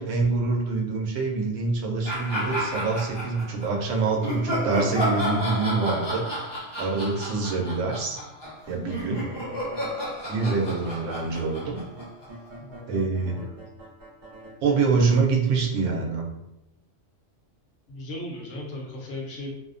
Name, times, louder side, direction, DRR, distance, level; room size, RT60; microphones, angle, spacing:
voice 1, 0.0-6.2 6.8-8.2 8.7-9.3 10.3-11.8 12.9-13.5 14.6-16.3, right 4 dB, 90° right, 0 dB, 0.9 m, -25 dB
sound 1, 2.0-3.7 4.2-12.5, equal, 40° left, 0.4 m, -32 dB
sound 2, 8.4-10.0 10.4-14.9, right 1 dB, 50° right, 0.7 m, -45 dB
voice 2, 17.9-19.5, left 1 dB, 75° left, -2 dB, 1.0 m, -36 dB
2.6 x 2.1 x 2.4 m, 0.87 s
omnidirectional pair, 1.3 m